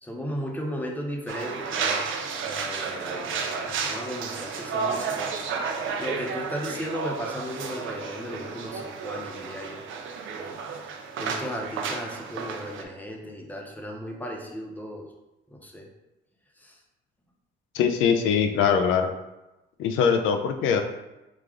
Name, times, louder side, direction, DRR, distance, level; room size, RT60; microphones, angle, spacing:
voice 1, 0.0-2.0 2.5-5.4 5.7-9.8 10.3-10.6 11.2-15.0 15.5-15.9 16.6-16.8, equal, 10° left, 1 dB, 0.8 m, -36 dB
sound 1, 1.3-12.8, right 5 dB, 80° right, 0.6 m, -32 dB
voice 2, 17.7-19.1 19.8-20.8, left 6 dB, 85° left, 5 dB, 0.4 m, -22 dB
4.9 x 2.4 x 3.6 m, 0.99 s
cardioid pair, 90°, 20 cm